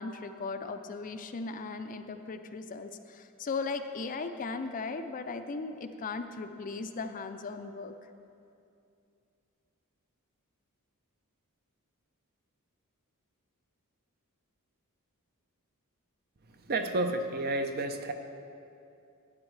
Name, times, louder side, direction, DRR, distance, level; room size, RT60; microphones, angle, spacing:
voice 1, 0.0-7.9, left 4 dB, 35° left, 8 dB, 0.4 m, -37 dB
voice 2, 16.5-18.1, right 2 dB, 45° right, 7 dB, 0.6 m, -31 dB
12.5 x 8.8 x 3.2 m, 2.6 s
head